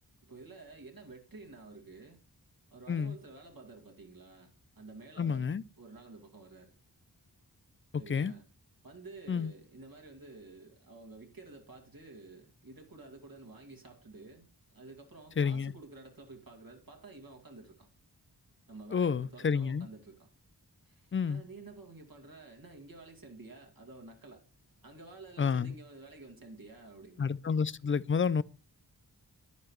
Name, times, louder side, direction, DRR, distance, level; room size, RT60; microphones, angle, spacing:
voice 1, 0.2-2.2 2.7-5.5 5.8-6.7 8.0-8.4 8.8-14.5 14.7-17.9 18.7-20.3 20.8-24.4 24.8-27.3, right 3 dB, 60° right, 2.2 m, -51 dB
voice 2, 5.2-5.6 8.1-8.3 9.3-9.5 15.4-15.7 18.9-19.9 21.1-21.4 25.4-25.7 27.2-28.4, left 6 dB, 35° left, 0.4 m, -29 dB
9.7 x 9.4 x 3.1 m
wide cardioid pair, 55°, 39 cm